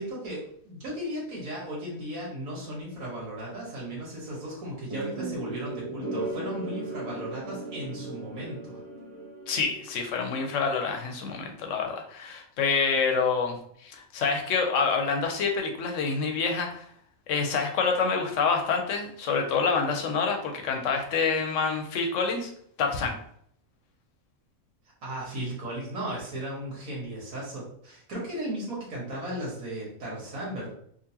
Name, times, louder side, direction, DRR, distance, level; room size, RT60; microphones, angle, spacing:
voice 1, 0.0-8.8 25.0-30.7, right 1 dB, 80° right, -5 dB, 1.7 m, -36 dB
sound 1, 4.9-10.0, right 2 dB, 20° right, 1.3 m, -37 dB
voice 2, 9.5-16.8 17.3-22.5 22.8-23.1, left 5 dB, 70° left, 3 dB, 0.9 m, -27 dB
3.8 x 2.4 x 2.8 m, 0.65 s
omnidirectional pair, 1.4 m